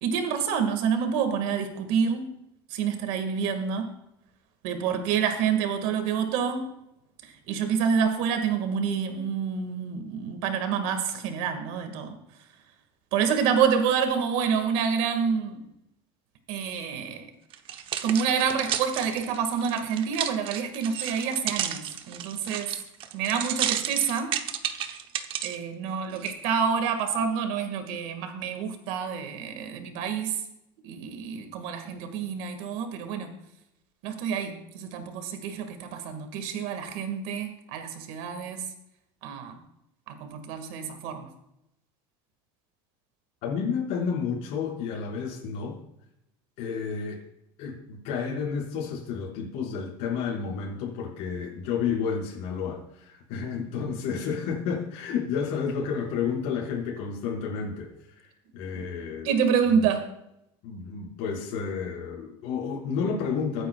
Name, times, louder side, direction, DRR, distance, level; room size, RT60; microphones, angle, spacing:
voice 1, 0.0-2.3 2.7-3.9 4.6-6.7 7.5-12.1 13.1-15.6 16.5-17.3 18.0-22.7 23.1-24.3 25.4-30.4 30.8-33.3 34.0-38.7 39.2-39.6 40.1-41.3 58.7-58.8 59.2-60.1, right 7 dB, 70° right, 6 dB, 2.0 m, -27 dB
sound 1, 17.5-25.6 26.2-26.3, right 10 dB, 45° right, 0.9 m, -32 dB
voice 2, 43.4-45.8 46.6-47.2 47.6-57.9 58.5-59.3 59.7-59.9 60.6-63.7, left 6 dB, 65° left, -5 dB, 5.1 m, -31 dB
22.5 x 9.1 x 2.4 m, 0.84 s
cardioid pair, 140°, 13 cm